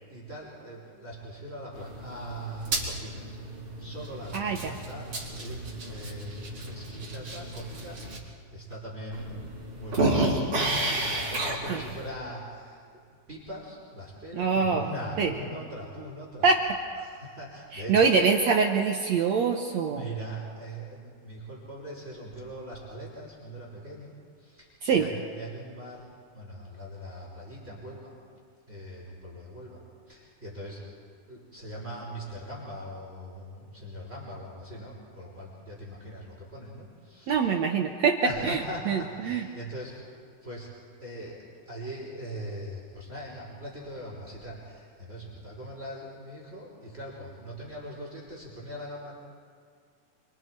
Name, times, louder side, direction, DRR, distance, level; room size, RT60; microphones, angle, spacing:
voice 1, 0.1-3.4 3.8-8.2 8.5-9.5 9.7-16.5 17.0-18.1 19.9-24.1 24.4-26.1 26.3-28.2 28.7-31.0 31.3-37.4 38.2-49.2, equal, 15° right, -4 dB, 5.1 m, -41 dB
sound 1, 1.7-8.2 8.7-8.8 9.1-12.1, right 2 dB, 35° right, 4.5 m, -32 dB
voice 2, 4.3-4.7 11.7-11.8 14.3-14.8 15.2-15.3 16.4-16.6 17.7-20.1 24.8-25.1 37.3-39.5, right 5 dB, 65° right, 3 dB, 1.8 m, -24 dB
28.5 x 25.5 x 4.7 m, 2.1 s
omnidirectional pair, 4.3 m